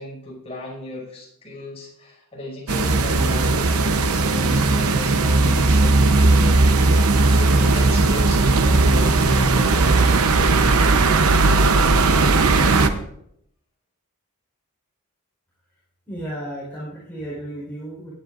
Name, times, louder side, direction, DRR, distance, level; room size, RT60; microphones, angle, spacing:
voice 1, 0.0-11.0, left 2 dB, 30° left, -3 dB, 5.7 m, -36 dB
sound 1, 2.7-12.9, right 3 dB, 70° right, 0.9 m, -17 dB
voice 2, 16.1-18.1, right 1 dB, 10° left, -8 dB, 4.4 m, -33 dB
19.0 x 10.5 x 2.6 m, 0.74 s
head